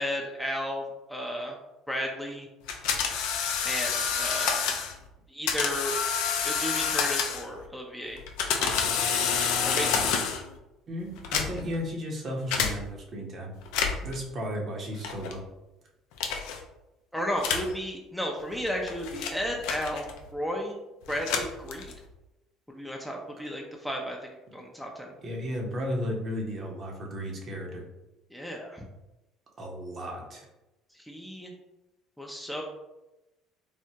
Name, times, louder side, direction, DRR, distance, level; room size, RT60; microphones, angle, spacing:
voice 1, 0.0-1.6 1.9-2.5 3.6-4.6 5.3-5.9 6.4-8.2 8.6-9.0 9.6-10.2 17.1-20.8 21.1-21.9 22.7-24.2 24.5-25.1 28.3-28.8 30.9-31.5 32.2-32.6, equal, 5° left, 0 dB, 0.5 m, -33 dB
sound 1, 2.7-4.9 5.5-7.6 8.2-10.5 11.2-11.8 12.5-12.7 13.6-14.1 15.0-15.4 16.2-16.6 17.4-17.7 18.5-20.3 21.0-22.1, left 6 dB, 80° left, 0.4 m, -28 dB
voice 2, 10.9-13.5 14.0-15.4 25.2-27.8 29.6-30.5, equal, 45° right, 0 dB, 0.8 m, -34 dB
3.4 x 2.0 x 2.8 m, 0.98 s
supercardioid pair, 80°, 0 cm